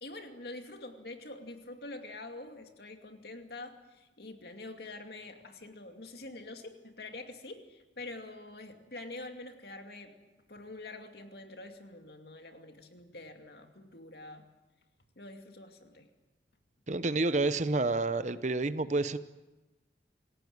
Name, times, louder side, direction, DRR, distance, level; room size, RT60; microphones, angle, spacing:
voice 1, 0.0-10.2 10.5-14.4 15.2-16.1, left 2 dB, 55° left, 5 dB, 2.5 m, -46 dB
voice 2, 16.9-19.2, right 2 dB, 40° right, 13 dB, 0.8 m, -29 dB
27.5 x 17.0 x 9.5 m, 1.1 s
head